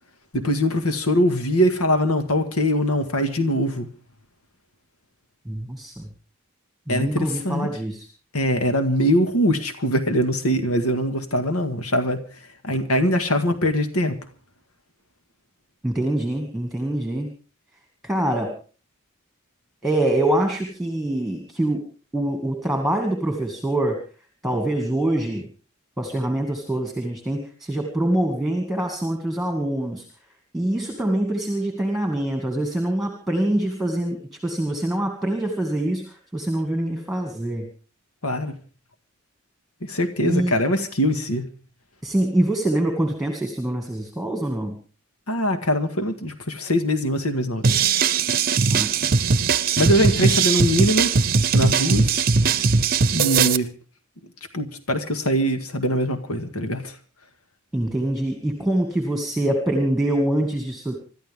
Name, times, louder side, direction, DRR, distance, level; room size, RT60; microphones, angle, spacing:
voice 1, 0.3-3.9 6.9-7.7 8.3-12.2 12.6-14.2 38.2-38.5 39.8-41.4 45.3-47.6 49.8-51.1 51.5-52.2 53.1-53.7 54.5-57.0, equal, 80° left, 8 dB, 1.9 m, -22 dB
voice 2, 5.5-6.0 6.9-8.1 15.8-17.3 18.0-18.5 19.8-21.9 22.1-24.0 24.4-25.5 26.0-30.0 30.5-36.1 36.3-37.7 40.2-40.6 42.0-44.8 48.7-48.9 57.7-60.9, right 1 dB, ahead, 3 dB, 2.2 m, -24 dB
sound 1, 47.6-53.6, right 5 dB, 45° right, 0.8 m, -19 dB
26.0 x 13.0 x 3.7 m, 0.37 s
head